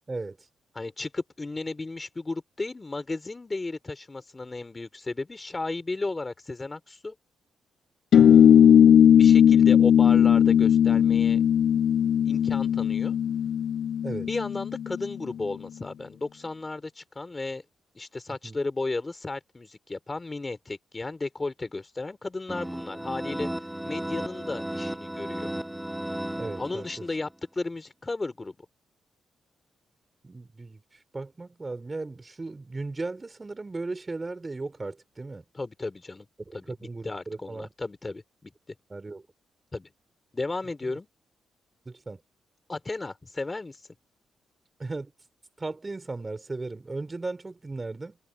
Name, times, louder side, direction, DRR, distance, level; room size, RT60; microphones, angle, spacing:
voice 1, 0.7-7.1 9.1-11.4 12.3-13.1 14.2-17.6 17.9-23.5 23.8-25.5 26.6-28.6 35.5-36.3 36.5-36.6 37.0-38.5 39.7-39.9 40.3-41.1 42.7-43.8, left 3 dB, 20° left, 4.0 m, -34 dB
sound 1, 8.1-15.1, left 9 dB, 65° left, 0.4 m, -18 dB
voice 2, 8.1-8.5 14.0-14.3 18.3-18.6 26.3-27.0 30.2-30.8 31.1-35.4 36.7-37.7 38.9-39.3 40.8-41.0 41.9-42.2 44.8-45.1 45.6-48.2, right 3 dB, 20° right, 5.9 m, -36 dB
sound 2, 22.5-27.2, right 1 dB, 5° right, 0.8 m, -34 dB
cardioid pair, 115°, 0 cm